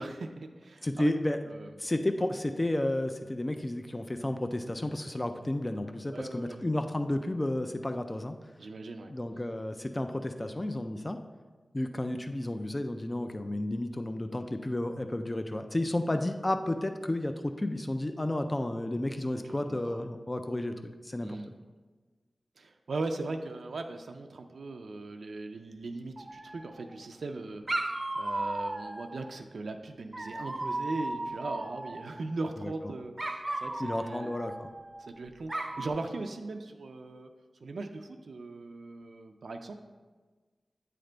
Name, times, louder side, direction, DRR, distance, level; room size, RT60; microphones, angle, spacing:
voice 1, 0.0-1.1 1.5-1.7 6.1-6.6 8.6-9.1 19.4-20.0 21.2-21.5 22.6-34.3 35.0-37.3 37.6-39.7, right 3 dB, 80° right, 5 dB, 0.3 m, -39 dB
voice 2, 0.8-1.4 1.8-8.4 9.1-11.2 11.7-20.8 21.0-21.4 32.6-32.7 33.8-34.7, left 1 dB, 25° left, 7 dB, 0.3 m, -32 dB
Dog, 26.2-27.0 27.7-29.3 30.1-32.2 33.2-35.1 35.5-35.9, right 2 dB, 30° right, 0.5 m, -36 dB
8.7 x 3.3 x 3.8 m, 1.4 s
wide cardioid pair, 70°, 0 cm